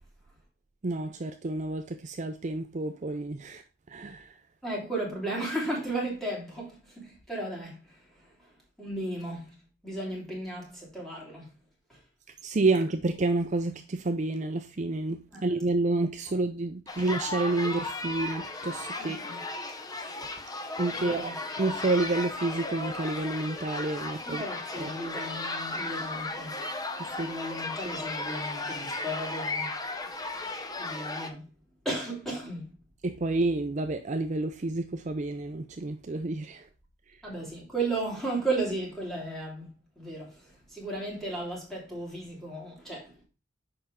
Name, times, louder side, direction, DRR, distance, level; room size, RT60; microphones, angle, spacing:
voice 1, 0.8-4.3 12.4-19.2 20.8-21.3 21.6-24.4 24.7-24.9 27.0-27.3 33.0-36.7, right 2 dB, 40° right, 0.5 m, -29 dB
voice 2, 4.6-8.3 8.8-9.6 9.8-11.5 11.9-12.0 15.3-15.4 19.0-19.4 20.9-21.3 24.2-26.5 27.2-29.7 30.8-31.5 31.8-32.7 37.2-43.2, right 2 dB, ahead, 3.0 m, -35 dB
sound 1, 16.9-31.3, left 2 dB, 20° left, 0.7 m, -35 dB
6.7 x 5.4 x 3.6 m
head